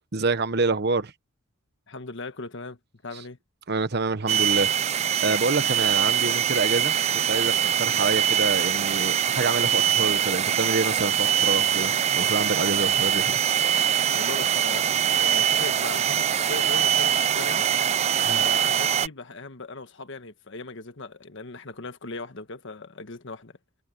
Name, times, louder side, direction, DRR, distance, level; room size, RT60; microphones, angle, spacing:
voice 1, 0.1-1.1 3.1-3.2 3.7-13.4 18.2-18.4, right 3 dB, 50° right, 1.1 m, -27 dB
voice 2, 1.9-2.8 3.0-3.4 14.1-17.6 18.2-23.5, left 3 dB, 60° left, 1.4 m, -38 dB
sound 1, 4.3-19.1, right 9 dB, 30° right, 0.4 m, -23 dB
head